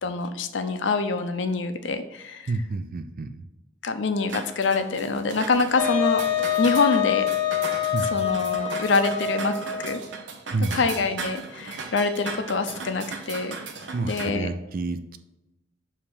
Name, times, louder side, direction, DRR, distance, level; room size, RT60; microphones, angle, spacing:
voice 1, 0.0-2.5 3.8-6.2 6.6-7.3 8.1-9.5 9.8-10.0 10.7-13.6 14.1-14.5, left 4 dB, 70° left, 9 dB, 0.6 m, -25 dB
voice 2, 2.5-3.4 7.9-8.3 10.5-10.9 13.9-15.2, right 3 dB, 50° right, 9 dB, 0.5 m, -29 dB
sound 1, 4.3-14.3, right 4 dB, 75° right, 0.8 m, -37 dB
Wind instrument woodwind instrument, 5.8-10.1, left 9 dB, 85° left, 1.0 m, -26 dB
7.2 x 2.9 x 4.8 m, 0.98 s
head